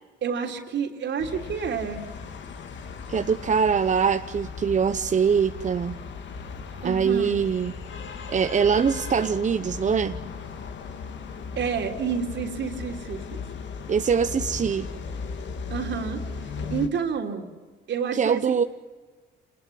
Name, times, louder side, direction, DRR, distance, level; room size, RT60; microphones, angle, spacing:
voice 1, 0.2-2.1 6.8-7.4 11.6-13.4 15.7-16.2 16.7-17.5 17.9-18.6, right 6 dB, 65° right, 4 dB, 3.5 m, -29 dB
sound 1, 1.2-16.9, left 5 dB, 65° left, 2.4 m, -37 dB
voice 2, 3.1-6.0 6.8-7.7 8.3-10.2 13.9-14.9 18.1-18.6, right 6 dB, 40° right, 9 dB, 0.9 m, -23 dB
28.0 x 20.5 x 9.4 m, 1.4 s
cardioid pair, 90°, 20 cm